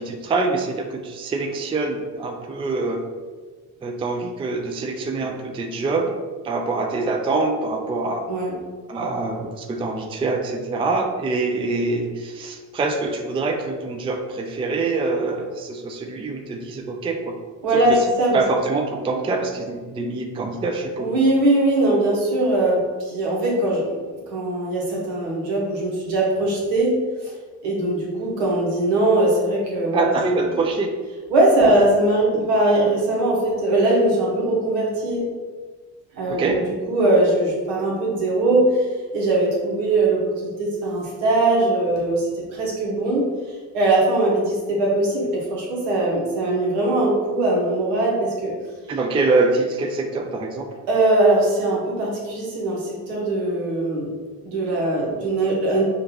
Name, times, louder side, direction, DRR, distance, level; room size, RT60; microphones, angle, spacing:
voice 1, 0.0-3.0 3.8-6.1 6.4-8.3 8.9-17.3 18.3-21.1 29.9-30.9 31.6-31.7 36.3-36.6 48.9-50.7, right 3 dB, 15° right, 4 dB, 0.4 m, -24 dB
voice 2, 17.6-18.4 21.0-23.8 24.1-26.9 27.2-27.3 27.6-30.2 31.3-35.2 36.1-36.6 36.9-38.9 39.1-42.2 42.5-43.3 43.7-48.5 50.9-54.1 54.4-55.8, right 2 dB, 80° right, -4 dB, 1.3 m, -20 dB
5.0 x 2.6 x 2.8 m, 1.4 s
hypercardioid pair, 55°, 46 cm